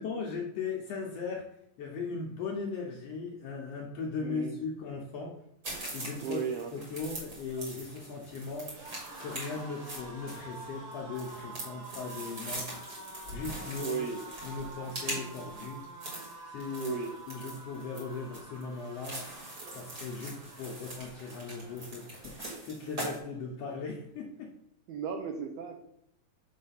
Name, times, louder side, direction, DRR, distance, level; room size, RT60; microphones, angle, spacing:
voice 1, 0.0-1.5 1.8-5.4 5.9-6.4 6.7-8.8 9.2-12.8 13.3-14.0 14.4-15.8 16.5-17.0 17.3-19.3 19.7-24.5, left 4 dB, 75° left, 0 dB, 1.5 m, -38 dB
voice 2, 4.2-4.5 6.2-6.7 13.8-14.2 16.8-17.1 24.9-25.8, right 6 dB, 85° right, 4 dB, 1.4 m, -35 dB
sound 1, 5.6-23.2, right 1 dB, 35° right, 2.3 m, -42 dB
sound 2, 7.4-22.5 22.8-23.1 23.3-24.1, right 2 dB, 50° right, 1.2 m, -48 dB
7.2 x 3.3 x 5.6 m, 0.76 s
omnidirectional pair, 3.6 m